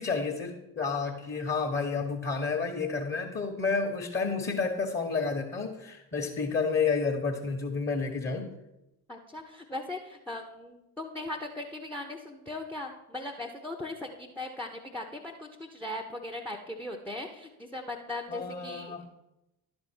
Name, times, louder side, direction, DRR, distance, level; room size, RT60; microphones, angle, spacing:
voice 1, 0.0-8.5 18.3-19.0, left 4 dB, 20° left, 1 dB, 1.2 m, -30 dB
voice 2, 9.1-19.0, left 1 dB, 5° left, 5 dB, 0.8 m, -39 dB
11.0 x 4.3 x 6.1 m, 0.92 s
figure-of-eight pair, 50°, 48 cm